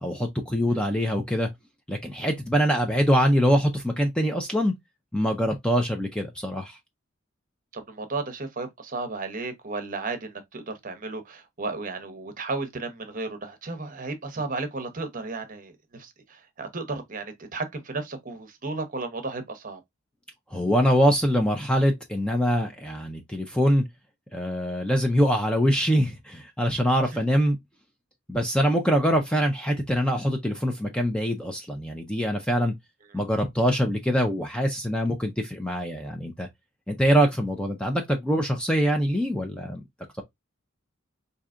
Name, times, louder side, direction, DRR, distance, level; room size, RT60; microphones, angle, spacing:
voice 1, 0.0-1.5 1.9-4.7 5.1-6.8 20.5-23.8 24.3-27.6 28.3-32.7 33.1-36.5 36.9-39.8, equal, 5° left, 0.5 m, -24 dB
voice 2, 7.7-19.8 33.1-33.2, right 3 dB, 40° right, 0.8 m, -34 dB
4.6 x 2.7 x 2.4 m
head